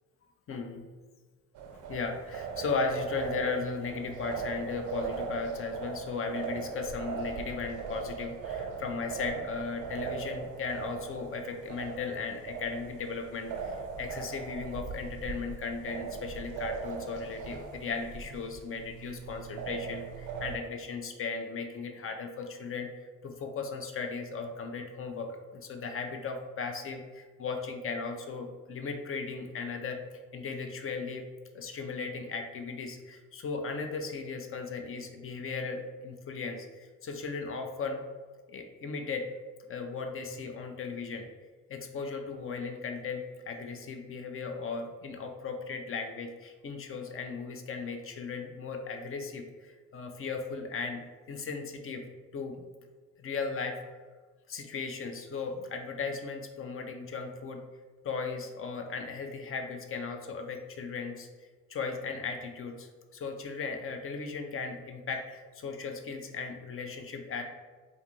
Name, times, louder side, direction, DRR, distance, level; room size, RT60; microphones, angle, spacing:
voice 1, 0.5-0.8 1.9-30.0 30.3-31.2 31.5-38.0 38.5-39.3 39.7-41.3 41.7-51.0 51.3-52.0 52.3-52.6 53.2-53.8 54.5-57.6 58.0-61.3 61.7-67.4, left 4 dB, 35° left, 5 dB, 0.4 m, -36 dB
sound 1, 1.5-20.6, right 5 dB, 55° right, 0.5 m, -39 dB
2.5 x 2.4 x 3.0 m, 1.4 s
hypercardioid pair, 55°, 37 cm